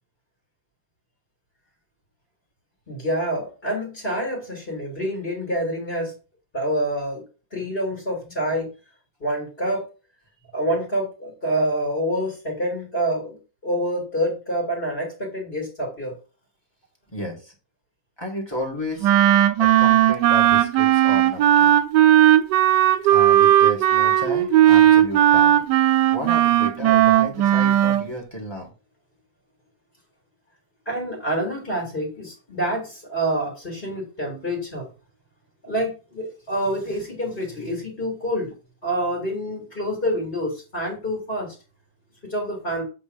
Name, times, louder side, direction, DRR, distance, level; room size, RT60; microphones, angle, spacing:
voice 1, 2.9-6.1 6.5-7.2 7.5-8.7 9.2-9.8 10.5-16.2 24.7-24.8 30.8-34.9 35.6-38.5 38.8-41.5 42.2-42.8, right 1 dB, 30° left, -3 dB, 2.6 m, -27 dB
voice 2, 17.1-17.5 18.2-19.1 19.6-21.8 23.1-25.6 26.1-28.7, left 1 dB, 15° left, 0 dB, 1.8 m, -33 dB
Wind instrument woodwind instrument, 19.0-28.0, right 12 dB, 75° right, 1.2 m, -16 dB
8.0 x 3.2 x 5.1 m, 0.33 s
omnidirectional pair, 2.0 m